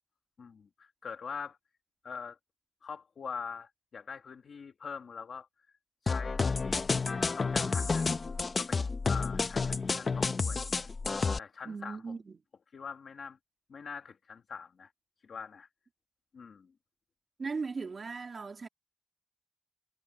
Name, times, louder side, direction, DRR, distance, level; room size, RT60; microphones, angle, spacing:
voice 1, 0.4-1.6 2.0-2.4 2.8-5.5 6.0-7.0 7.4-8.1 8.5-10.9 11.4-12.0 12.7-13.4 13.7-14.9 15.3-15.7 16.3-16.7, left 6 dB, 85° left, 1.5 m, -43 dB
sound 1, 6.1-11.4, left 4 dB, 50° left, 1.0 m, -30 dB
voice 2, 11.6-12.4 17.4-18.7, right 4 dB, 55° right, 3.6 m, -38 dB
wide cardioid pair, 105°, 0 cm